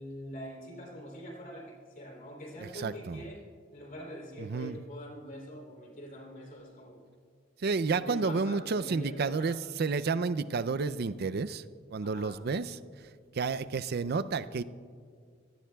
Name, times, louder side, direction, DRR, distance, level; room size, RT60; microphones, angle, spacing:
voice 1, 0.0-3.4 3.7-7.0 8.0-9.5 12.0-12.4, equal, 45° left, -1 dB, 3.4 m, -44 dB
voice 2, 2.6-3.2 4.4-4.8 7.6-11.6 11.9-12.8 13.3-14.6, right 4 dB, 50° right, 15 dB, 0.5 m, -31 dB
28.0 x 17.5 x 2.3 m, 2.1 s
head